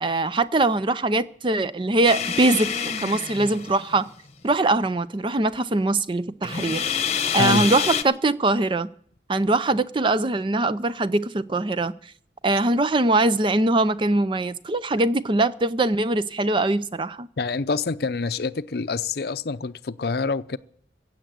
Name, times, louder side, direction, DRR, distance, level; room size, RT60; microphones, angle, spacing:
voice 1, 0.0-4.1 4.4-6.9 7.3-8.9 9.3-11.9 12.4-17.3, right 2 dB, 25° right, 0.5 m, -22 dB
sound 1, 2.0-4.1 6.4-8.0, left 7 dB, 35° left, 1.0 m, -27 dB
voice 2, 17.4-20.6, left 4 dB, 60° left, 0.6 m, -26 dB
16.0 x 8.0 x 9.1 m
head